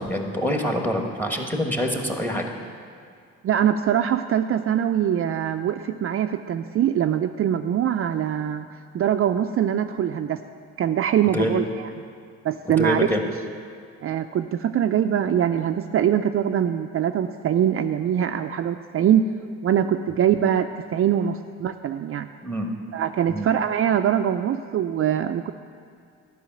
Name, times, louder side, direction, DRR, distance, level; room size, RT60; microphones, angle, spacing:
voice 1, 0.0-2.5 11.3-11.6 12.8-13.2 22.4-22.7 23.3-23.5, left 1 dB, 5° left, 3 dB, 1.4 m, -25 dB
voice 2, 3.4-8.7 8.9-10.4 10.8-11.9 12.4-13.1 14.0-19.2 19.6-22.3 22.9-25.5, right 9 dB, 50° right, 7 dB, 0.4 m, -23 dB
11.5 x 5.7 x 8.9 m, 2.2 s
cardioid pair, 90°, 30 cm